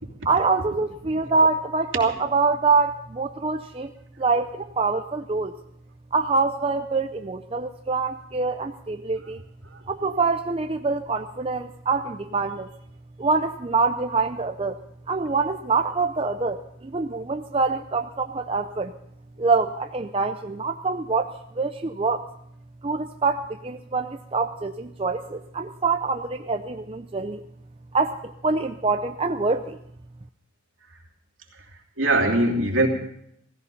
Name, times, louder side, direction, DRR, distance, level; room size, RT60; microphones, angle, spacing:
voice 1, 0.2-3.9 4.2-5.5 6.1-9.4 9.9-12.7 13.2-14.8 15.1-18.9 19.4-21.3 21.5-22.2 22.8-27.4 27.9-29.8, right 4 dB, 25° right, 6 dB, 0.5 m, -25 dB
voice 2, 32.0-32.9, right 2 dB, 70° right, 1 dB, 3.0 m, -22 dB
17.0 x 15.5 x 5.4 m, 0.72 s
head